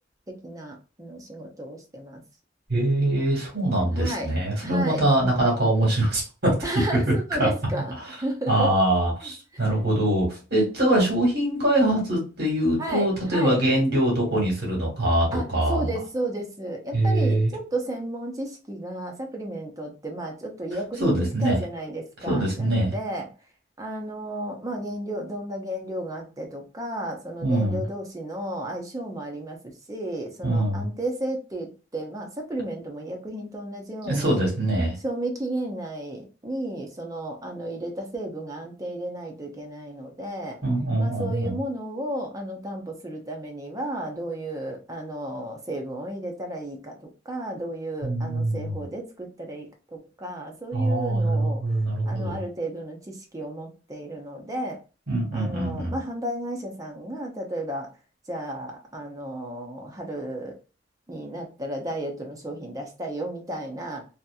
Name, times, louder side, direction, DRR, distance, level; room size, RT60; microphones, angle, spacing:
voice 1, 0.3-2.2 4.0-4.3 4.6-5.1 6.6-8.7 12.8-13.6 15.3-23.3 23.8-29.6 29.9-34.4 35.0-40.6 41.0-51.6 52.1-54.8 55.3-57.9 58.3-60.6 61.1-64.1, right 1 dB, 20° right, 2 dB, 0.6 m, -33 dB
voice 2, 2.7-6.6 7.4-7.8 8.5-15.9 16.9-17.5 21.0-21.6 22.2-22.9 27.4-27.8 30.4-30.9 34.0-34.9 40.6-41.6 48.0-48.7 50.7-52.4 55.1-56.0, right 1 dB, 60° right, -2 dB, 1.5 m, -23 dB
2.8 x 2.5 x 2.2 m, 0.33 s
head